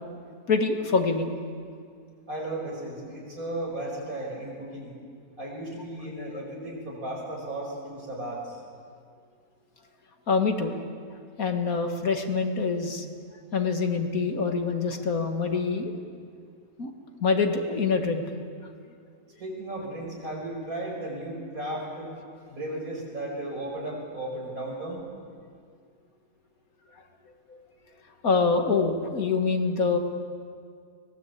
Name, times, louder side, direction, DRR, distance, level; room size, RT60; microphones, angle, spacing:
voice 1, 0.5-1.3 10.3-10.8 11.4-13.1 13.5-15.9 16.8-16.9 17.2-18.2 27.5-27.6 28.2-30.0, left 4 dB, 60° left, 5 dB, 2.1 m, -25 dB
voice 2, 2.3-4.9 5.4-8.4 19.4-22.1 22.5-25.0, right 1 dB, 60° right, -2 dB, 6.0 m, -35 dB
23.5 x 19.0 x 8.4 m, 2.2 s
omnidirectional pair, 1.7 m